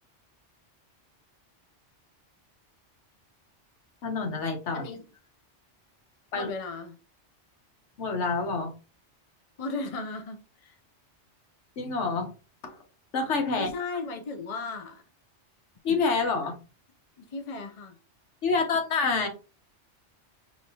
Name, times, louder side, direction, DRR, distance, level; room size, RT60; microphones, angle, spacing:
voice 1, 4.0-4.9 6.3-6.5 8.0-8.7 11.8-12.3 12.6-12.7 13.1-13.7 15.8-16.6 18.4-19.3, left 4 dB, 75° left, 1.3 m, -27 dB
voice 2, 4.7-5.0 6.3-7.0 9.6-10.7 13.5-15.0 17.2-18.0, left 3 dB, 40° left, 0.6 m, -36 dB
4.9 x 3.0 x 2.7 m
omnidirectional pair, 1.2 m